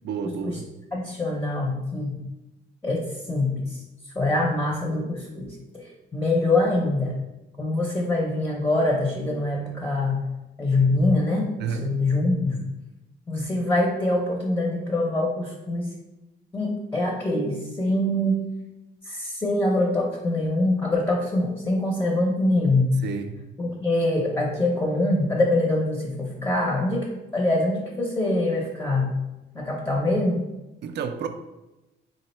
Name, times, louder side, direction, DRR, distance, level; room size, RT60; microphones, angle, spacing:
voice 1, 0.0-0.7 11.6-11.9 23.0-23.4 30.8-31.3, right 6 dB, 60° right, 8 dB, 0.4 m, -30 dB
voice 2, 0.9-2.2 2.8-3.8 4.1-7.1 7.6-10.3 10.6-12.6 13.3-15.9 16.5-18.4 19.1-22.9 23.6-27.1 27.3-29.2 29.5-30.4, left 2 dB, 10° left, -1 dB, 0.6 m, -24 dB
3.6 x 2.1 x 4.2 m, 1.0 s
cardioid pair, 90°, 20 cm